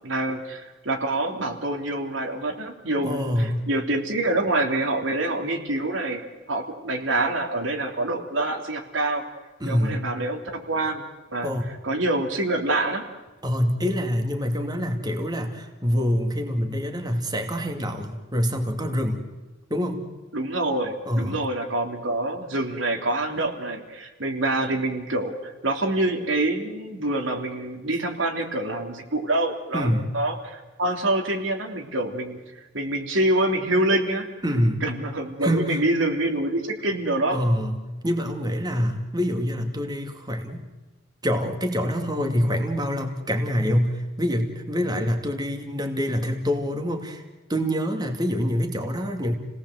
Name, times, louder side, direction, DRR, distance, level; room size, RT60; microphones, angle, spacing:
voice 1, 0.0-6.2 6.5-9.2 9.6-11.1 11.3-11.5 11.8-13.0 20.3-32.4 32.7-34.3 34.8-37.4, right 2 dB, 80° right, 3 dB, 3.2 m, -26 dB
voice 2, 3.0-3.7 9.6-10.0 11.4-11.7 13.4-19.2 19.7-20.0 21.1-21.4 29.7-30.1 34.4-34.8 35.4-35.8 37.3-40.6 41.2-47.2 47.5-49.4, equal, 20° right, 4 dB, 2.4 m, -25 dB
29.5 x 18.5 x 8.0 m, 1.2 s
head